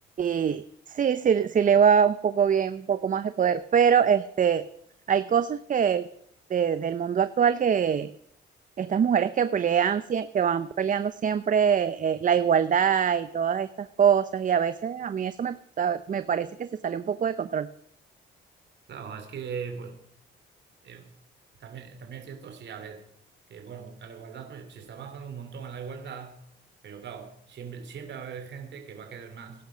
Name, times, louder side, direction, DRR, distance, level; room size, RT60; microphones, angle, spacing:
voice 1, 0.2-4.6 5.1-6.0 6.5-8.1 8.8-17.7, right 7 dB, 40° right, 12 dB, 0.7 m, -24 dB
voice 2, 18.9-20.0 20.8-21.1 21.6-23.0 23.5-26.4 26.8-29.7, right 6 dB, 60° right, 5 dB, 3.0 m, -40 dB
18.0 x 10.5 x 5.1 m, 0.69 s
cardioid pair, 90°, 20 cm